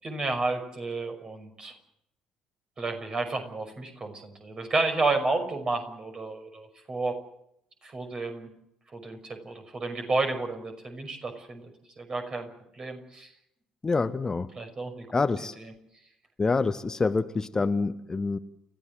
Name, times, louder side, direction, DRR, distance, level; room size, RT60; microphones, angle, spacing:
voice 1, 0.0-1.7 2.8-7.2 7.8-8.5 8.9-11.6 12.0-12.5 12.8-13.3 14.5-15.1 15.6-15.7, right 3 dB, 30° right, 5 dB, 5.9 m, -31 dB
voice 2, 13.8-14.5 15.1-15.5 16.4-18.4, left 4 dB, 25° left, 13 dB, 1.0 m, -26 dB
30.0 x 15.5 x 7.7 m, 0.77 s
figure-of-eight pair, 50°, 3 cm